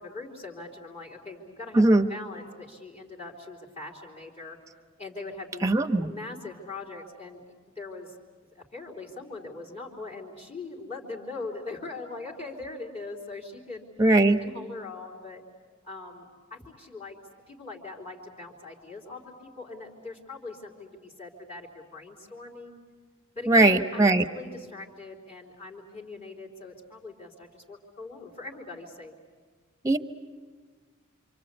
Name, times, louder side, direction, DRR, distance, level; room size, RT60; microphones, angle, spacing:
voice 1, 0.0-1.8 2.1-4.6 5.0-7.4 7.8-8.1 8.5-13.9 14.4-15.4 15.8-17.2 17.5-22.8 23.3-29.1, left 3 dB, 30° left, -3 dB, 3.6 m, -41 dB
voice 2, 1.7-2.1 5.6-6.1 14.0-14.4 23.5-24.2 29.8-30.0, right 2 dB, 15° right, 8 dB, 1.1 m, -19 dB
27.5 x 26.0 x 8.2 m, 1.5 s
head